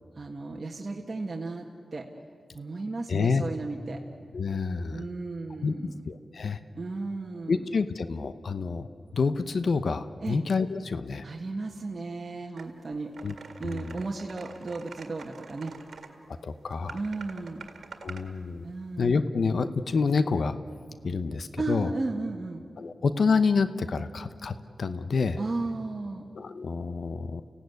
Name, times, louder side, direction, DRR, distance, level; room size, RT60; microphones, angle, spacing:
voice 1, 0.1-2.1 2.5-4.0 4.9-5.9 6.7-7.7 10.2-10.4 11.2-13.1 13.6-15.8 16.9-17.7 18.6-19.1 21.6-22.6 25.4-26.3, right 3 dB, 45° right, 0 dB, 1.6 m, -34 dB
voice 2, 3.1-3.4 4.3-5.1 5.6-5.7 6.0-6.6 7.5-8.9 9.1-11.2 13.2-13.3 13.6-14.0 16.4-17.0 18.0-18.6 19.0-20.6 21.0-21.9 22.8-25.4 26.4-27.4, left 4 dB, 75° left, 12 dB, 0.8 m, -28 dB
sound 1, 12.6-12.7 13.1-16.1 16.9-18.3, right 5 dB, 80° right, 1.9 m, -45 dB
29.5 x 16.5 x 9.5 m, 2.4 s
cardioid pair, 65°, 0 cm